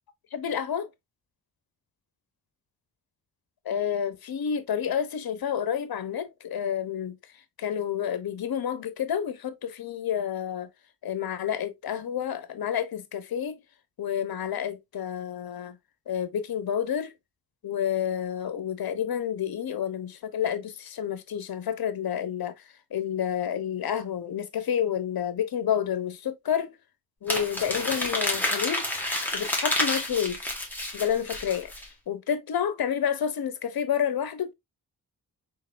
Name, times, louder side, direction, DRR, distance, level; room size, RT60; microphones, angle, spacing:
voice 1, 0.3-0.9 3.6-7.2 7.6-10.7 11.0-13.6 14.0-15.8 16.1-17.1 17.6-22.6 22.9-26.8 27.2-28.8 29.3-30.5 30.9-31.7 32.1-34.5, left 9 dB, 70° left, 0.8 m, -29 dB
Crumpling crinkling, 27.3-31.9, left 1 dB, 5° left, 1.7 m, -29 dB
3.9 x 3.6 x 2.4 m
cardioid pair, 65°, 38 cm